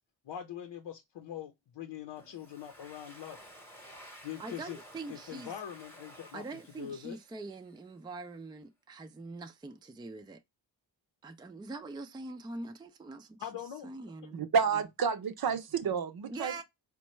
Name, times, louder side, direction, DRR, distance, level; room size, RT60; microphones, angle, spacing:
voice 1, 0.2-3.4 4.2-4.8 5.1-7.2 13.4-13.9, left 10 dB, 65° left, 0.7 m, -43 dB
Domestic sounds home sounds, 2.2-7.8, equal, 5° left, 0.9 m, -54 dB
voice 2, 4.4-5.5 6.3-10.4 11.2-13.4 13.8-14.4 16.3-16.6, right 3 dB, 10° right, 0.4 m, -43 dB
voice 3, 14.3-16.6, right 6 dB, 50° right, 0.6 m, -30 dB
4.3 x 2.2 x 3.0 m
cardioid pair, 70°, 46 cm